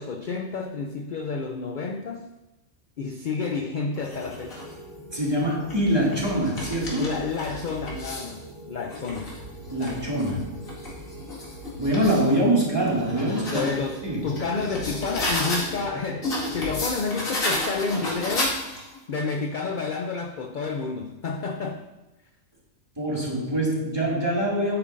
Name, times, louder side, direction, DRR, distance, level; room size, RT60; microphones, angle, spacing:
voice 1, 0.0-2.3 3.0-4.6 7.0-9.3 13.5-18.6 19.1-21.8, left 4 dB, 55° left, 5 dB, 0.5 m, -30 dB
sound 1, 4.0-4.7 5.4-8.4 8.8-12.3 12.7-15.8 16.2-19.0, left 1 dB, 80° left, 2.5 m, -33 dB
sound 2, 4.1-16.9, right 1 dB, 45° right, 2.2 m, -44 dB
voice 2, 5.1-7.1 9.7-10.6 11.8-13.7 14.0-14.3 23.0-24.8, right 1 dB, 20° right, -5 dB, 2.2 m, -24 dB
10.0 x 8.9 x 2.6 m, 1.0 s
omnidirectional pair, 1.4 m